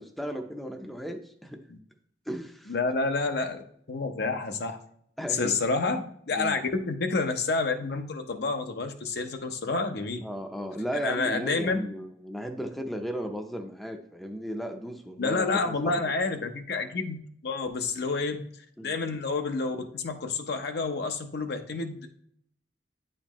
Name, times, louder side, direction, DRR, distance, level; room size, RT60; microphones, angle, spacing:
voice 1, 0.0-1.6 2.3-2.7 5.2-5.7 6.3-6.6 10.2-16.5 18.8-19.0, equal, ahead, 4 dB, 0.5 m, -35 dB
voice 2, 2.7-4.8 5.3-6.6 6.9-10.2 11.0-11.8 15.2-18.4 18.8-22.1, left 3 dB, 65° left, 6 dB, 0.7 m, -29 dB
9.2 x 4.3 x 3.0 m, 0.66 s
head